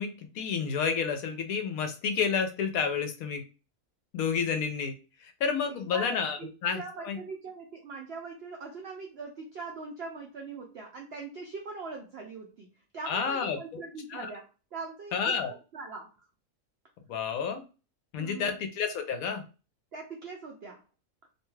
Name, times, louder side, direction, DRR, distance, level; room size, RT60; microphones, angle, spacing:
voice 1, 0.0-3.4 4.1-4.9 5.2-7.2 13.1-13.6 14.1-14.3 15.1-15.5 17.1-17.6 18.1-19.4, left 6 dB, 75° left, 6 dB, 1.0 m, -30 dB
voice 2, 5.7-6.5 6.7-12.7 12.9-16.3 18.2-18.5 19.9-20.8, right 4 dB, 75° right, 1 dB, 0.5 m, -41 dB
2.7 x 2.2 x 3.1 m, 0.32 s
omnidirectional pair, 1.6 m